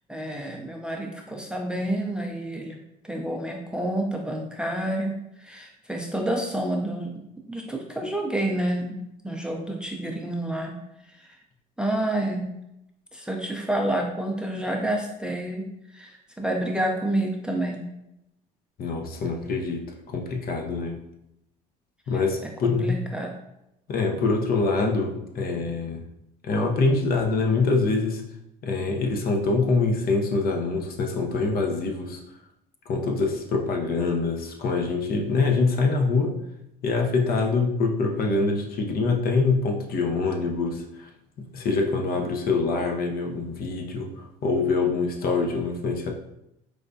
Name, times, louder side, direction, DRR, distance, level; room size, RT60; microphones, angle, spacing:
voice 1, 0.1-2.8 3.0-7.2 7.5-9.0 9.2-10.8 11.1-11.4 11.8-12.5 13.1-17.9 22.6-23.3, right 1 dB, 5° right, 1 dB, 0.5 m, -29 dB
voice 2, 18.8-21.0 22.1-23.0 23.9-26.0 26.4-28.2 28.6-32.2 32.9-36.4 36.8-41.1 41.4-46.1, left 3 dB, 50° left, 2 dB, 0.7 m, -25 dB
4.8 x 2.2 x 2.6 m, 0.83 s
supercardioid pair, 75°, 20 cm